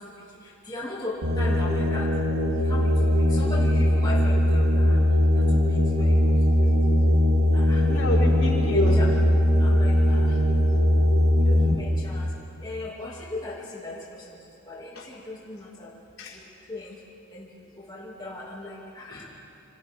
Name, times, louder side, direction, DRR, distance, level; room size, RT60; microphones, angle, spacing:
voice 1, 0.7-2.1 2.7-5.0 5.3-5.6 6.0-6.7 7.5-7.8 8.7-8.8 9.6-10.3 11.5-12.3 12.6-13.6 13.8-14.0 14.7-15.9 16.7-16.9 17.3-17.5 17.8-19.2, left 2 dB, 20° left, -6 dB, 2.3 m, -38 dB
sound 1, 1.2-11.8, left 1 dB, 85° right, 2.6 m, -20 dB
voice 2, 7.6-9.2 11.0-11.9 14.9-15.1 16.2-16.4 19.1-19.2, left 1 dB, 75° left, -6 dB, 4.7 m, -30 dB
27.5 x 26.0 x 3.6 m, 2.8 s
head